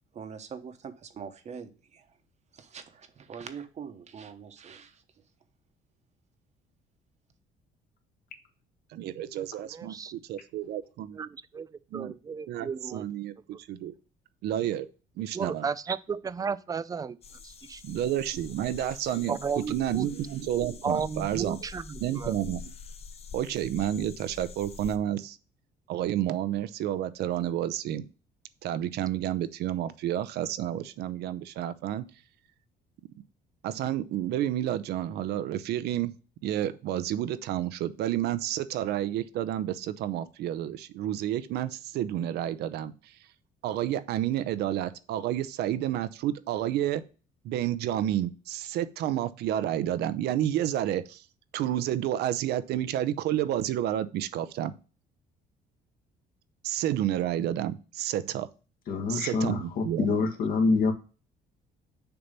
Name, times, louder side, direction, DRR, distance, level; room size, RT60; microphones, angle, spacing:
voice 1, 0.1-2.1 2.5-5.0, right 6 dB, 40° right, 1.0 m, -43 dB
voice 2, 8.9-11.2 11.9-12.1 12.5-13.9 14.4-14.9 15.2-15.7 17.8-21.6 22.0-22.7 23.3-25.4 25.9-28.0 28.6-32.0 33.6-36.1 36.4-43.1 43.6-47.0 47.4-51.2 51.5-54.7 56.6-58.5 59.1-60.1, right 12 dB, 75° right, 0.6 m, -30 dB
voice 3, 9.7-10.1 11.2-11.3 11.5-11.7 11.9-13.0 15.3-17.2 17.4-18.0 19.3-20.1 20.8-22.3, right 6 dB, 20° right, 0.4 m, -33 dB
sound 1, 17.2-25.0, left 5 dB, 35° left, 0.7 m, -45 dB
voice 4, 58.9-60.9, left 4 dB, 60° left, 1.5 m, -26 dB
6.9 x 3.0 x 5.2 m
cardioid pair, 110°, 17 cm